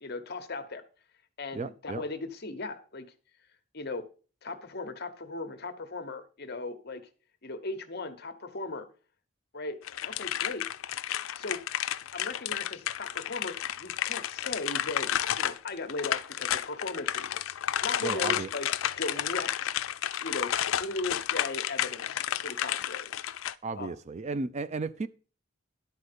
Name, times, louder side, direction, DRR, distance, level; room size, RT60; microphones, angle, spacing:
voice 1, 0.0-0.8 1.4-3.1 3.7-4.0 4.4-7.0 7.4-8.9 9.5-9.8 10.0-10.6 11.3-11.6 12.1-15.1 15.4-17.5 17.8-18.7 19.0-19.7 20.2-23.1 23.8-23.9, left 3 dB, 50° left, 1.1 m, -37 dB
voice 2, 1.5-2.0 18.0-18.5 23.6-25.1, right 3 dB, 35° right, 0.4 m, -34 dB
sound 1, 9.8-23.5, left 11 dB, 75° left, 0.4 m, -32 dB
11.5 x 4.4 x 6.7 m
head